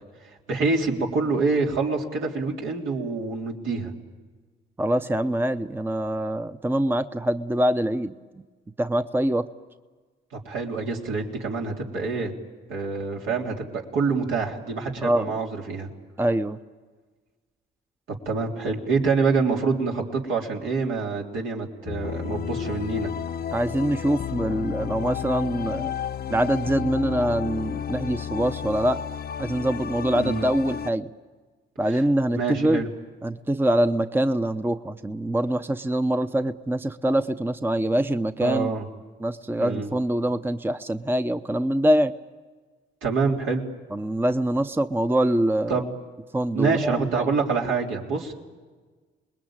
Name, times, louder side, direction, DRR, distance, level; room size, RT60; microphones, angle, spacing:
voice 1, 0.5-3.9 10.5-12.3 12.7-15.9 18.3-23.1 30.2-30.5 32.4-32.9 38.4-38.9 39.6-39.9 43.0-43.6 45.7-45.9 46.5-48.3, right 4 dB, 80° right, -1 dB, 3.6 m, -26 dB
voice 2, 4.8-8.1 8.8-9.5 15.0-15.4 16.2-16.6 23.5-25.9 26.3-29.0 29.4-31.1 31.8-32.8 33.2-38.7 39.2-42.1 43.9-45.8 46.3-47.3, right 1 dB, 10° right, 10 dB, 0.7 m, -24 dB
sound 1, 21.8-30.9, left 8 dB, 55° left, 0.8 m, -32 dB
27.0 x 20.5 x 8.9 m, 1.4 s
cardioid pair, 90°, 20 cm